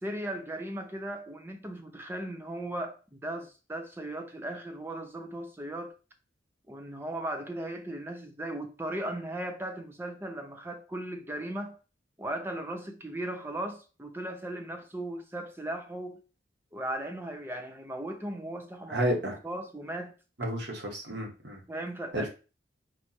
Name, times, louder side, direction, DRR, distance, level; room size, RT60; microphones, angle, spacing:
voice 1, 0.0-6.0 6.7-11.8 12.2-16.2 16.7-19.0 19.4-20.1 21.7-22.3, right 1 dB, 10° right, 0.6 m, -37 dB
voice 2, 18.9-19.4 20.4-21.6 22.1-22.3, right 1 dB, 70° right, 1.5 m, -31 dB
4.5 x 2.5 x 4.2 m
head